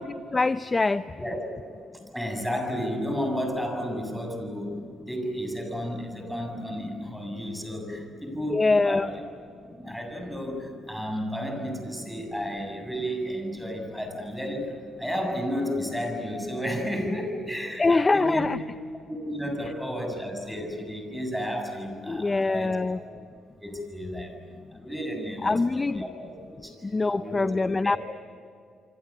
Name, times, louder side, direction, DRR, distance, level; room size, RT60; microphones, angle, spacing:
voice 1, 0.3-1.0 8.5-9.1 17.8-18.6 22.1-23.0 25.4-26.0 26.9-28.0, left 3 dB, 25° left, 12 dB, 0.6 m, -23 dB
voice 2, 2.1-4.8 5.1-9.2 9.7-18.5 19.1-23.0 23.6-24.4 24.7-26.3 26.6-26.8 27.1-27.5 27.8-28.0, equal, ahead, 5 dB, 7.1 m, -32 dB
26.5 x 26.0 x 8.6 m, 2.3 s
cardioid pair, 90°, 0 cm